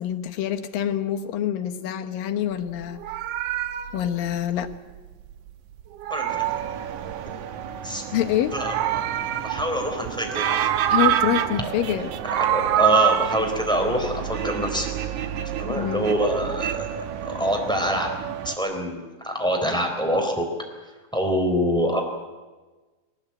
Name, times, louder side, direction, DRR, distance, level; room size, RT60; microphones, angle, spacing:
voice 1, 0.0-3.0 3.9-4.7 8.1-8.5 10.9-12.1 15.7-16.1, left 11 dB, 80° left, 5 dB, 3.0 m, -26 dB
Meow, 2.8-5.5 5.8-7.5 8.3-9.9 10.2-11.7 12.0-13.4, right 12 dB, 90° right, 1.3 m, -25 dB
sound 1, 6.3-18.6, right 9 dB, 65° right, 2.3 m, -32 dB
voice 2, 8.5-9.0 9.4-10.5 12.4-14.9 15.6-16.9 17.2-18.1 18.4-20.5 21.1-22.0, equal, ahead, 4 dB, 3.6 m, -25 dB
22.5 x 19.0 x 8.7 m, 1.3 s
omnidirectional pair, 4.0 m